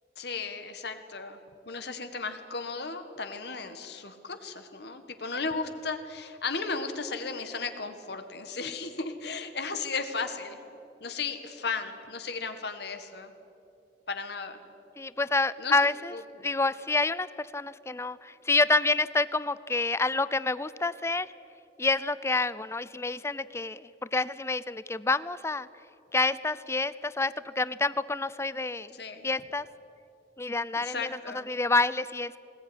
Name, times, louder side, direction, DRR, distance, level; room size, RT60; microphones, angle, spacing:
voice 1, 0.2-1.4 1.7-10.6 11.0-13.3 14.1-14.6 15.6-15.8 16.1-16.5 28.9-29.3 30.8-31.5, left 4 dB, 65° left, 8 dB, 1.7 m, -35 dB
voice 2, 15.0-16.1 16.4-21.3 21.8-25.7 26.1-29.0 29.2-29.7 30.4-31.2 31.5-32.4, left 3 dB, 15° left, 17 dB, 0.5 m, -28 dB
20.0 x 19.0 x 9.9 m, 2.8 s
head